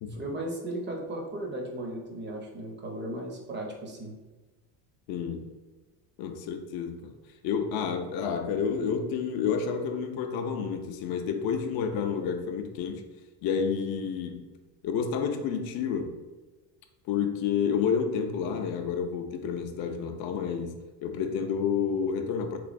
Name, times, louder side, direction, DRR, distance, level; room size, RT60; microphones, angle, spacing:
voice 1, 0.1-4.1, right 1 dB, 20° right, 0 dB, 0.6 m, -36 dB
voice 2, 5.1-5.5 6.2-7.2 7.4-13.0 13.4-14.4 14.8-16.2 17.1-20.7 21.0-22.6, left 6 dB, 50° left, 5 dB, 0.5 m, -29 dB
3.4 x 3.1 x 2.5 m, 1.2 s
cardioid pair, 120°, 50 cm